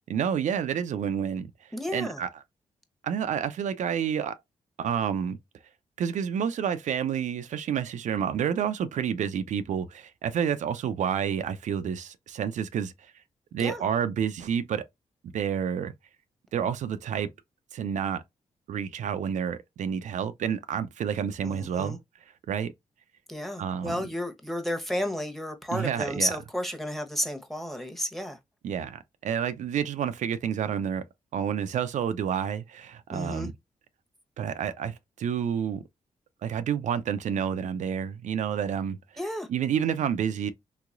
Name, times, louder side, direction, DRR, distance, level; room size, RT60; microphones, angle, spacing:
voice 1, 0.1-2.3 3.0-4.3 4.8-5.4 6.0-13.1 13.5-14.9 15.3-15.9 16.5-17.3 17.7-18.2 18.7-22.0 22.5-22.7 23.6-24.0 25.7-26.3 28.6-31.0 31.3-33.5 34.4-35.8 36.4-39.0 39.5-40.5, right 8 dB, 75° right, 0.4 m, -29 dB
voice 2, 1.7-2.2 13.6-13.8 21.4-22.0 23.3-28.4 33.1-33.5 39.2-39.5, equal, ahead, 1.1 m, -32 dB
3.5 x 3.0 x 2.4 m
cardioid pair, 55°, 13 cm